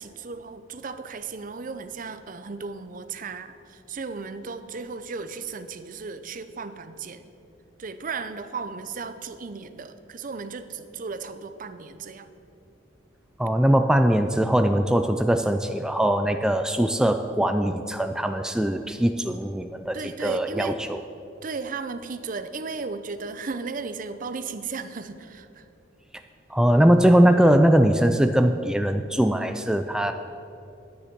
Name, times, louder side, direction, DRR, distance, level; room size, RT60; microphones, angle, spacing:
voice 1, 0.0-7.2 7.8-12.3 19.9-20.8 21.4-25.7, right 4 dB, 45° right, 11 dB, 0.6 m, -35 dB
voice 2, 13.4-21.0 26.5-30.1, equal, 5° right, 7 dB, 0.3 m, -21 dB
10.0 x 9.5 x 6.0 m, 2.7 s
head